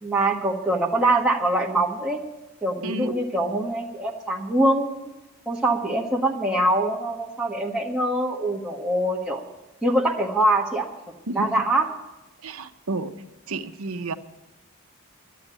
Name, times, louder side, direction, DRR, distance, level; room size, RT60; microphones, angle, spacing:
voice 1, 0.0-2.2 2.6-4.9 5.4-9.4 9.8-10.9 11.3-11.9, right 1 dB, 5° right, -4 dB, 1.4 m, -23 dB
voice 2, 12.4-13.1 13.5-14.1, right 2 dB, 75° right, 7 dB, 0.9 m, -30 dB
12.0 x 9.4 x 9.0 m, 1.0 s
head